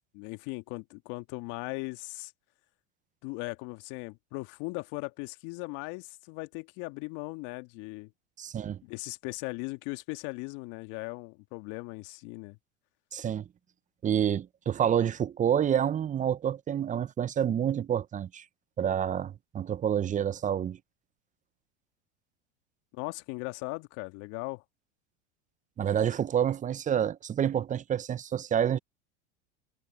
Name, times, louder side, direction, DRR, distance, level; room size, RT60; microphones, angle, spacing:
voice 1, 0.1-2.3 3.2-8.1 8.8-12.6 22.9-24.6, left 26 dB, 55° left, 1.9 m, -38 dB
voice 2, 8.4-8.8 13.1-13.5 14.0-18.4 18.8-20.8 25.8-28.8, right 9 dB, 20° right, 0.6 m, -28 dB
hypercardioid pair, 100°, 36 cm